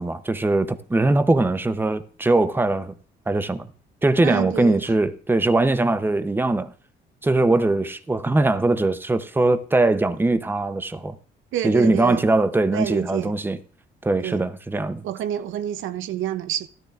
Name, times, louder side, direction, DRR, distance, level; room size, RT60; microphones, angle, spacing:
voice 1, 0.0-2.9 3.3-3.7 4.0-6.7 7.2-11.1 11.6-13.6 14.0-15.0, right 2 dB, 10° right, 0.7 m, -21 dB
voice 2, 4.2-4.9 11.5-12.3 12.7-13.3 14.2-14.4 15.0-16.7, right 11 dB, 80° right, 0.6 m, -28 dB
13.5 x 12.0 x 2.4 m
cardioid pair, 90°, 20 cm